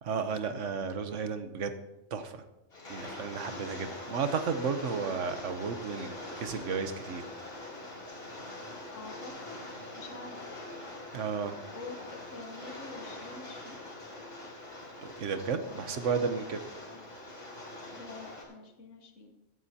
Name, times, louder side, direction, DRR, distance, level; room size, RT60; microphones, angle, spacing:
voice 1, 0.0-1.8 2.1-2.4 2.9-7.2 11.1-11.6 15.0-16.6, right 5 dB, 75° right, 9 dB, 1.2 m, -33 dB
Rain, 2.7-18.4, left 1 dB, 50° left, 3.2 m, -43 dB
voice 2, 8.9-9.6 9.9-10.6 11.7-13.8 15.7-16.3 16.8-17.0 17.9-19.3, left 4 dB, 75° left, 4 dB, 1.5 m, -47 dB
15.0 x 11.5 x 2.8 m, 0.95 s
omnidirectional pair, 1.3 m